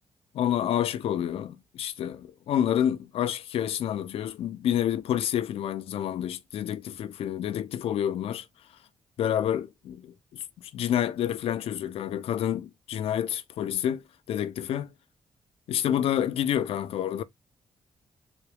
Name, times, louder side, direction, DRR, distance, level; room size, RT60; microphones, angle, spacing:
voice 1, 0.3-8.5 9.2-14.9 15.7-17.2, left 10 dB, 80° left, 0.5 m, -28 dB
3.9 x 2.3 x 3.3 m
cardioid pair, 65°, 10 cm